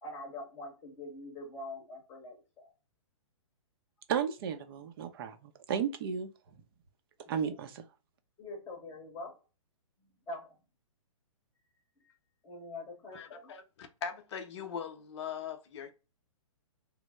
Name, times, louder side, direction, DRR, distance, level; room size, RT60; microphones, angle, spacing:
voice 1, 0.0-2.7 7.2-7.6 8.4-9.3 10.3-10.5 12.0-12.1 12.4-13.5, left 2 dB, 15° left, 0.9 m, -44 dB
voice 2, 4.1-6.3 7.3-7.8, right 7 dB, 45° right, 0.6 m, -34 dB
voice 3, 13.1-15.9, left 7 dB, 50° left, 0.7 m, -41 dB
3.1 x 2.0 x 3.3 m
hypercardioid pair, 145°, 17 cm